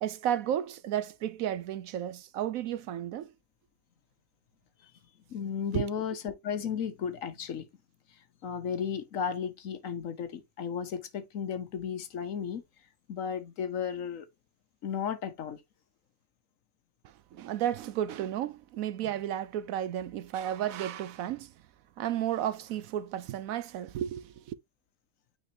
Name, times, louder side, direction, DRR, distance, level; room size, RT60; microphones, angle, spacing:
voice 1, 0.0-3.3 5.7-5.9 17.0-21.5 22.0-24.5, right 11 dB, 70° right, 0.9 m, -33 dB
voice 2, 5.3-7.7 8.1-12.6 13.1-14.3 14.8-15.6, left 7 dB, 60° left, 1.2 m, -34 dB
8.9 x 4.2 x 2.7 m
omnidirectional pair, 1.6 m